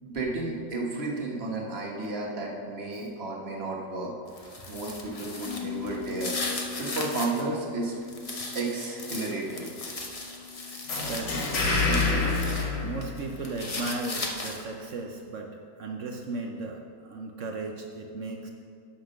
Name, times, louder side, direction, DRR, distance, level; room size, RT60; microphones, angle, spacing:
voice 1, 0.0-4.1 4.7-6.4 6.8-7.9 8.5-9.7, right 2 dB, 35° right, -1 dB, 1.3 m, -32 dB
sound 1, 4.3-7.4 7.8-12.7 13.0-14.8, left 2 dB, 40° left, 0.5 m, -37 dB
Bass guitar, 5.5-11.7, left 7 dB, 80° left, 2.3 m, -42 dB
sound 2, 10.9-13.6, left 3 dB, 65° left, 2.0 m, -27 dB
voice 2, 11.0-12.3 12.8-15.5 15.8-18.5, right 2 dB, 75° right, 2 dB, 0.7 m, -36 dB
8.4 x 5.9 x 6.4 m, 2.4 s
omnidirectional pair, 2.1 m